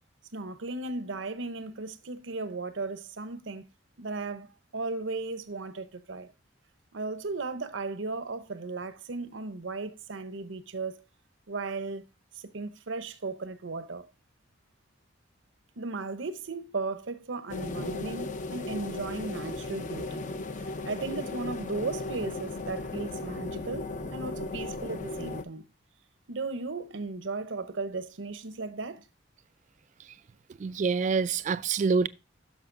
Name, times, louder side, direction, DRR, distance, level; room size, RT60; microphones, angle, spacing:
voice 1, 0.3-3.6 4.0-6.3 6.9-11.0 11.5-12.0 12.3-14.1 15.8-20.2 20.8-25.6 26.3-29.0, right 3 dB, 75° right, 0.8 m, -36 dB
sound 1, 17.5-25.4, left 2 dB, 40° left, 0.7 m, -36 dB
voice 2, 30.6-32.1, right 5 dB, 40° right, 0.3 m, -26 dB
10.5 x 6.6 x 2.5 m
head